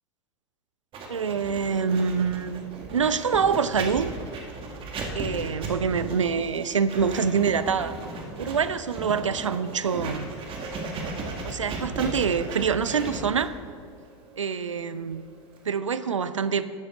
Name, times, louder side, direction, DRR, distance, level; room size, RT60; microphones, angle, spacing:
Writing, 0.9-15.7, right 2 dB, 35° right, 2.0 m, -36 dB
voice 1, 1.1-2.7 2.9-4.1 5.1-8.0 8.4-10.3 11.4-13.5 14.4-15.3 15.6-16.6, right 6 dB, 85° right, 14 dB, 0.5 m, -25 dB
12.5 x 9.2 x 3.8 m, 2.1 s
figure-of-eight pair, 90°, 16 cm